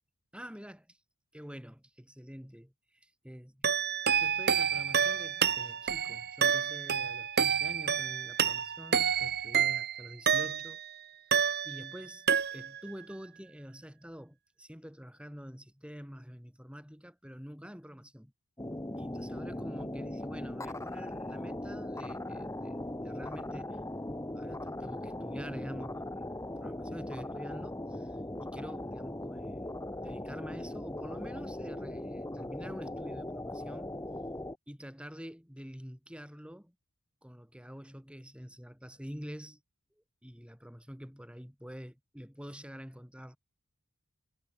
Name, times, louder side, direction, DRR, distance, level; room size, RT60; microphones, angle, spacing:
voice 1, 0.3-1.0 1.3-2.7 3.0-10.8 11.6-18.3 19.0-23.8 24.3-26.3 26.6-34.0 34.7-36.7 37.2-39.6 40.0-43.4, equal, 5° right, 8.0 m, -47 dB
sound 1, 3.6-10.9 11.3-12.0 12.3-12.9, right 7 dB, 50° right, 2.3 m, -29 dB
sound 2, 18.6-34.6, left 1 dB, 15° left, 1.2 m, -39 dB
head